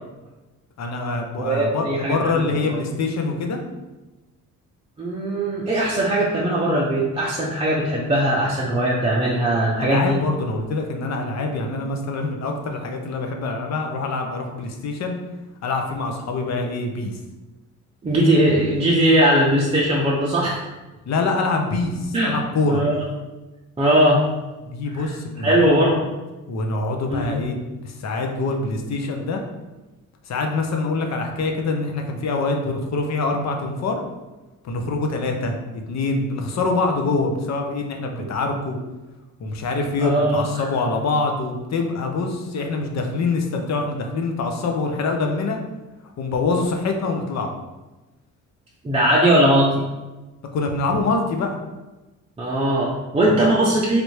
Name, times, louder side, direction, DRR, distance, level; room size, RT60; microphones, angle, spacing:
voice 1, 0.8-3.6 9.8-15.2 15.6-17.2 21.1-22.8 24.6-26.1 26.5-27.6 27.8-29.4 30.3-34.0 34.6-35.5 35.9-38.8 39.4-45.6 46.2-47.5 50.5-51.6 53.3-53.4, left 3 dB, 55° left, 3 dB, 0.6 m, -25 dB
voice 2, 1.4-2.8 5.0-10.2 18.0-20.6 22.1-22.3 22.7-23.0 23.8-24.2 24.9-25.1 25.4-26.0 27.1-27.4 40.0-40.6 48.8-49.7 52.4-54.0, right 1 dB, 20° right, -5 dB, 0.5 m, -19 dB
3.3 x 2.5 x 3.1 m, 1.1 s
cardioid pair, 90°, 33 cm